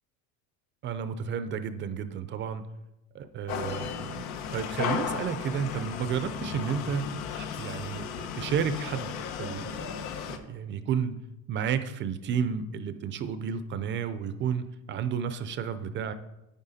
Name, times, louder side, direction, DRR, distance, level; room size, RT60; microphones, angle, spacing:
voice 1, 0.8-2.6 3.1-4.2 4.5-9.1 9.4-9.9 10.3-11.1 11.5-16.1, right 7 dB, 30° right, 11 dB, 0.5 m, -32 dB
sound 1, 3.5-10.4, left 7 dB, 90° left, 1.1 m, -35 dB
9.3 x 9.0 x 4.2 m, 0.92 s
cardioid pair, 145°, 40 cm